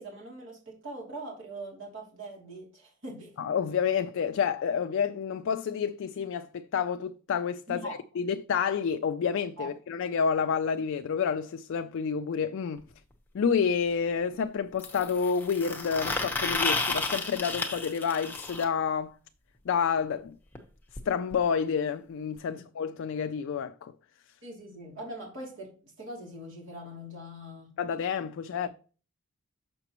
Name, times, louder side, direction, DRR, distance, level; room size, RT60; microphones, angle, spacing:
voice 1, 0.0-3.3 7.7-8.0 9.6-9.7 22.4-22.6 24.4-27.8 28.6-28.7, right 1 dB, 60° right, 2.6 m, -42 dB
voice 2, 3.4-12.8 13.3-19.1 19.7-20.4 21.1-23.9 27.8-28.7, left 6 dB, 60° left, 0.3 m, -29 dB
sound 1, 12.8-12.9 14.8-18.6 20.6-20.7 21.0-21.1 21.3-21.4 22.4-22.5, left 3 dB, 10° left, 0.9 m, -32 dB
6.9 x 5.9 x 2.9 m
head